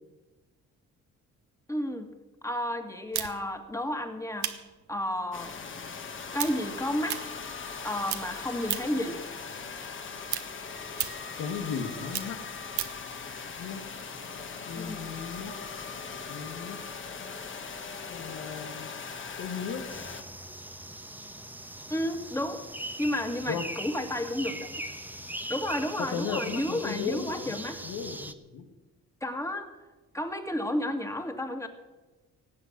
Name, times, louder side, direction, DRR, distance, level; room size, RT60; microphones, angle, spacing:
voice 1, 1.7-2.1 2.4-4.6 4.9-5.5 6.3-7.2 7.8-9.2 14.7-15.1 21.9-22.7 23.0-24.7 25.5-27.8 29.2-29.7 30.1-31.7, left 1 dB, 10° left, 6 dB, 2.0 m, -32 dB
sound 1, 3.1-9.1 9.5-13.1, right 11 dB, 75° right, 1.2 m, -36 dB
sound 2, 5.3-20.2, left 5 dB, 40° left, 1.8 m, -40 dB
voice 2, 11.4-12.4 13.6-13.8 14.6-15.5 16.3-16.8 18.1-18.9 19.4-19.8 23.5-23.6 26.0-28.7, left 6 dB, 90° left, 7 dB, 1.8 m, -36 dB
sound 3, 19.9-28.3, right 1 dB, 5° right, 1.1 m, -40 dB
18.5 x 8.0 x 7.4 m, 1.2 s
cardioid pair, 90°, 30 cm